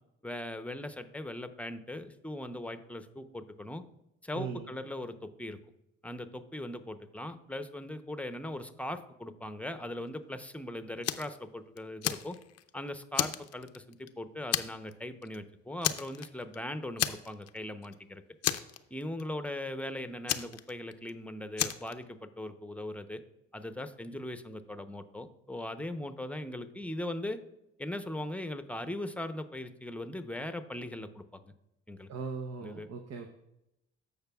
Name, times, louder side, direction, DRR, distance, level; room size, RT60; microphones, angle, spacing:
voice 1, 0.2-3.8 4.2-5.6 6.0-12.4 12.7-18.2 18.9-23.2 23.5-27.4 27.8-31.5 31.9-32.1 32.6-32.9, left 1 dB, 5° left, 9 dB, 0.8 m, -39 dB
voice 2, 4.3-4.7 32.1-33.3, right 5 dB, 60° right, 4 dB, 0.9 m, -38 dB
Fire, 11.0-11.4 11.8-12.7 13.1-14.1 14.5-14.9 15.2-15.4 15.8-16.6 17.0-17.6 17.8-17.9 18.4-19.2 20.3-21.1 21.6-21.9, left 11 dB, 55° left, 0.6 m, -32 dB
15.0 x 5.3 x 2.3 m, 0.87 s
supercardioid pair, 60°, 30 cm